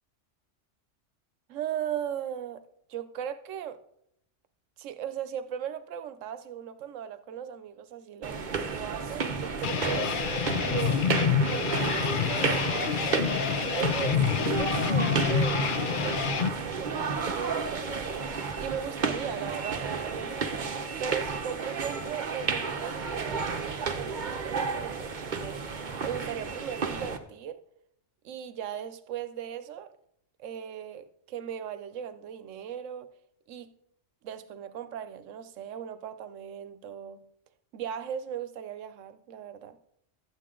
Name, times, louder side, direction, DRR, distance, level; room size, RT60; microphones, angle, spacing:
voice 1, 1.5-2.6 2.9-3.8 4.8-10.1 10.6-13.3 13.7-18.2 18.6-20.5 21.0-25.6 26.0-27.6 28.2-29.9 30.4-33.1 33.5-33.7 34.2-37.2 37.7-39.8, right 9 dB, 85° right, 1.0 m, -38 dB
sound 1, 8.2-27.2, right 5 dB, 45° right, 0.9 m, -32 dB
sound 2, 9.6-16.5, left 7 dB, 55° left, 0.7 m, -27 dB
12.0 x 8.6 x 3.7 m
omnidirectional pair, 1.3 m